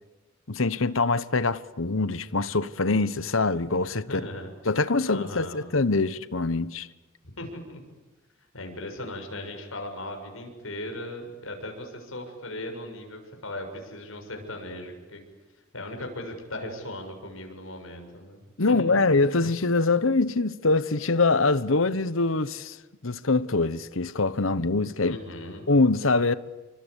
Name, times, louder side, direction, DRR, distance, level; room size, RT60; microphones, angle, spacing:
voice 1, 0.5-4.2 4.6-6.9 18.6-22.8 23.0-25.2 25.7-26.3, left 3 dB, 75° left, 1.2 m, -24 dB
voice 2, 4.1-4.5 5.0-5.6 7.2-7.8 8.5-15.2 15.7-18.4 18.7-19.0 25.0-25.6, left 1 dB, 90° left, 7.1 m, -38 dB
29.0 x 24.5 x 8.4 m
head